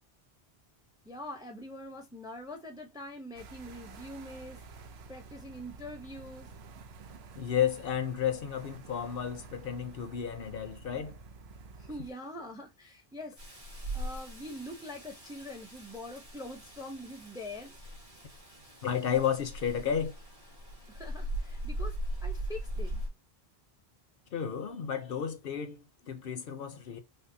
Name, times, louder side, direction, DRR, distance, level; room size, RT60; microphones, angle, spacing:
voice 1, 1.0-4.6 5.1-6.5 11.8-13.6 13.9-17.8 20.9-23.0, left 1 dB, 5° right, 0.5 m, -44 dB
sound 1, 3.4-12.1, right 4 dB, 80° right, 0.9 m, -50 dB
voice 2, 7.4-11.2 18.8-20.2 24.3-27.0, left 8 dB, 65° left, 0.8 m, -32 dB
Rain, 13.4-23.1, right 1 dB, 50° right, 2.0 m, -39 dB
5.4 x 2.0 x 2.6 m
omnidirectional pair, 1.1 m